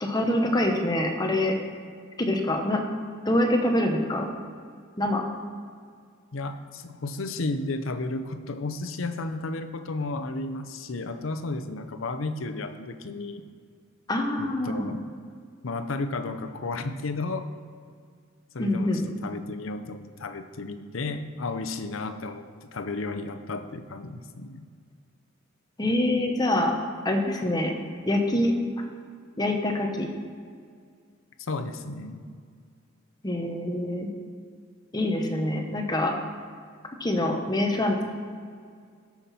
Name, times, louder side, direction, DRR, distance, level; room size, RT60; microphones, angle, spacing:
voice 1, 0.0-1.5 2.2-2.8 3.2-4.3 5.0-5.2 14.1-14.9 18.6-19.1 25.8-26.7 27.0-27.8 28.1-28.5 29.4-30.1 33.2-34.1 34.9-36.1 37.0-38.0, left 1 dB, 20° left, 3 dB, 0.9 m, -25 dB
voice 2, 6.3-13.4 14.4-15.0 15.6-17.5 18.5-18.9 19.2-24.7 31.5-32.2, left 3 dB, 75° left, 9 dB, 0.7 m, -33 dB
13.0 x 5.8 x 4.2 m, 2.1 s
head